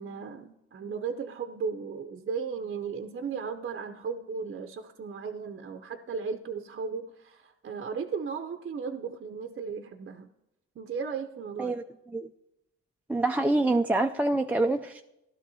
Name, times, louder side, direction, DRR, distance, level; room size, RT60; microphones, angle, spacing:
voice 1, 0.0-10.3 10.8-11.7, right 5 dB, 40° right, 6 dB, 0.6 m, -36 dB
voice 2, 13.1-15.0, right 2 dB, 5° right, 3 dB, 0.3 m, -26 dB
16.0 x 12.0 x 2.7 m, 0.91 s
cardioid pair, 90°, 30 cm